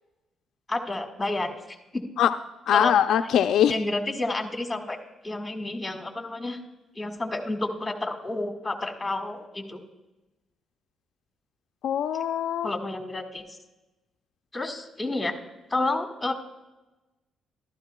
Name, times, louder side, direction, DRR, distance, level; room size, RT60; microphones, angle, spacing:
voice 1, 0.7-1.8 2.7-2.9 3.7-5.0 5.2-6.6 6.9-9.8 12.6-13.4 14.5-15.3 15.7-16.3, left 2 dB, 15° left, 4 dB, 1.7 m, -30 dB
voice 2, 2.7-3.7 11.8-12.7, left 9 dB, 75° left, 7 dB, 0.4 m, -22 dB
15.0 x 12.5 x 2.3 m, 1.1 s
cardioid pair, 90°, 0 cm